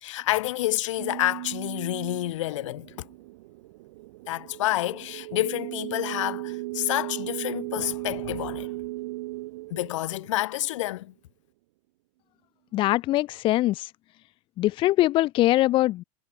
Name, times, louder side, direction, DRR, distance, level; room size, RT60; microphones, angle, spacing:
voice 1, 0.0-3.1 4.3-8.7 9.7-11.1, left 16 dB, 80° left, 1.2 m, -29 dB
sound 1, 1.0-10.8, right 20 dB, 65° right, 1.0 m, -37 dB
voice 2, 12.7-13.9 14.6-16.0, left 16 dB, 35° left, 0.7 m, -22 dB
supercardioid pair, 140°, 16 cm